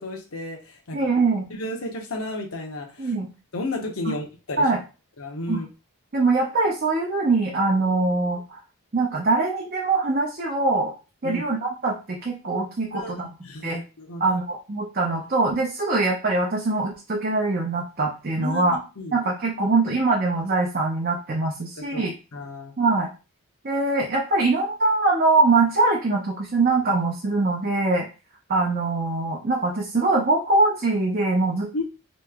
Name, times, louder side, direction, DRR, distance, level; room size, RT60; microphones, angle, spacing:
voice 1, 0.0-1.0 1.5-3.1 3.5-4.6 5.2-5.7 11.2-11.4 12.9-13.1 13.4-14.4 18.3-19.2 21.8-22.0 22.3-22.7 31.7-31.8, left 1 dB, 75° left, 3 dB, 0.8 m, -32 dB
voice 2, 0.9-1.5 3.0-3.3 4.1-4.2 4.6-4.8 5.5-5.6 6.1-8.6 8.9-10.9 11.2-13.3 13.6-13.8 14.2-18.8 19.1-22.1 22.8-23.1 23.6-28.1 28.5-31.8, right 3 dB, 40° right, -1 dB, 0.6 m, -23 dB
3.0 x 2.8 x 3.5 m, 0.32 s
head